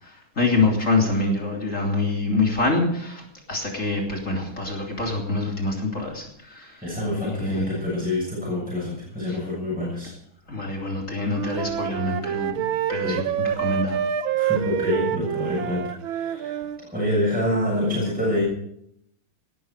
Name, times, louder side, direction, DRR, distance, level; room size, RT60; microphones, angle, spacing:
voice 1, 0.0-6.7 7.2-7.8 9.3-9.4 10.5-14.0, left 2 dB, 35° left, 0 dB, 3.6 m, -25 dB
voice 2, 6.8-10.1 13.0-13.2 14.3-16.6 16.9-18.4, left 1 dB, 5° right, -5 dB, 7.2 m, -26 dB
Wind instrument woodwind instrument, 11.3-16.8, right 10 dB, 75° right, 1.5 m, -27 dB
18.5 x 12.5 x 5.0 m, 0.70 s
omnidirectional pair, 2.3 m